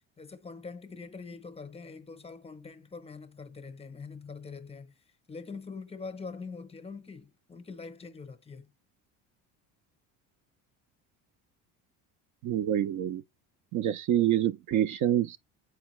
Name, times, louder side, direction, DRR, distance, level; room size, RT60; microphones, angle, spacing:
voice 1, 0.2-4.9 5.3-8.7, left 4 dB, 15° left, 0.7 m, -43 dB
voice 2, 12.4-13.2 13.7-15.4, right 11 dB, 55° right, 0.5 m, -26 dB
7.8 x 4.8 x 3.0 m
cardioid pair, 120°, 37 cm